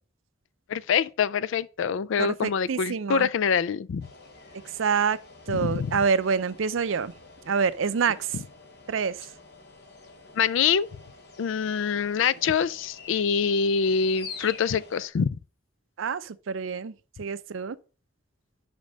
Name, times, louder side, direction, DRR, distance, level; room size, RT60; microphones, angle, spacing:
voice 1, 0.7-4.1 5.5-6.0 10.3-10.9 11.4-15.3, left 6 dB, 80° left, 0.4 m, -25 dB
voice 2, 2.2-3.3 4.6-5.2 5.5-7.1 7.5-8.4 8.9-9.2 16.0-17.8, right 6 dB, 85° right, 0.5 m, -27 dB
sound 1, 4.0-15.1, left 4 dB, 55° left, 0.9 m, -48 dB
5.3 x 5.2 x 6.2 m
head